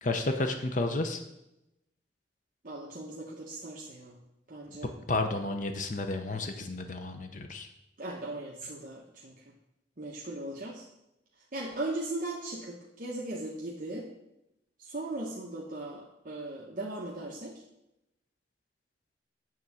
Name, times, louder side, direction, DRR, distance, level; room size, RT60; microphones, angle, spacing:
voice 1, 0.0-1.2 5.1-7.7, left 2 dB, 45° left, 6 dB, 0.7 m, -31 dB
voice 2, 2.6-4.2 4.5-4.9 8.0-9.5 10.0-10.8 11.5-14.1 14.8-17.5, right 2 dB, 50° right, -4 dB, 1.0 m, -38 dB
9.3 x 3.7 x 7.1 m, 0.88 s
head